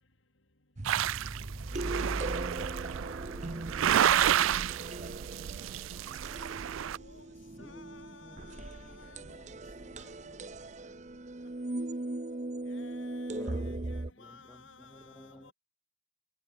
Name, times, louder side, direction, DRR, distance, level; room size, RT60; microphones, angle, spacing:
sound 1, 0.8-14.1, right 2 dB, 35° right, 0.8 m, -39 dB
sound 2, 0.8-7.0, right 10 dB, 85° right, 0.4 m, -30 dB
voice 1, 2.1-2.7 3.0-3.3 5.9-6.4 6.9-10.1 12.7-15.5, left 4 dB, 75° left, 4.0 m, -56 dB
voice 2, 2.8-4.7 7.6-7.9 8.2-8.5 9.2-9.4 13.3-13.7 14.2-15.5, equal, 5° left, 0.8 m, -52 dB
voice 3, 10.2-11.3 12.7-15.5, equal, 55° left, 7.9 m, -66 dB
head